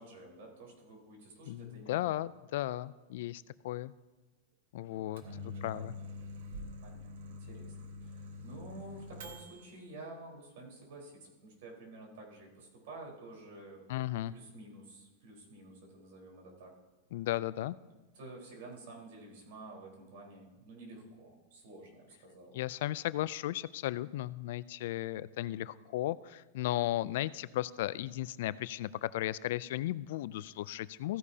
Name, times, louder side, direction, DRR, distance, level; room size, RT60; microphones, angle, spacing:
voice 1, 0.0-2.1 5.2-5.9 6.8-7.7 8.0-11.1 11.4-13.8 14.3-16.7 18.1-22.6, right 2 dB, 65° right, -2 dB, 4.2 m, -50 dB
voice 2, 1.4-3.9 4.7-5.9 13.9-14.3 17.1-17.8 22.5-31.2, left 14 dB, 60° left, 18 dB, 0.3 m, -35 dB
Microwave oven, 4.9-9.7, left 2 dB, 80° right, 1.5 m, -45 dB
15.5 x 10.0 x 2.8 m, 1.2 s
supercardioid pair, 160°, 0 cm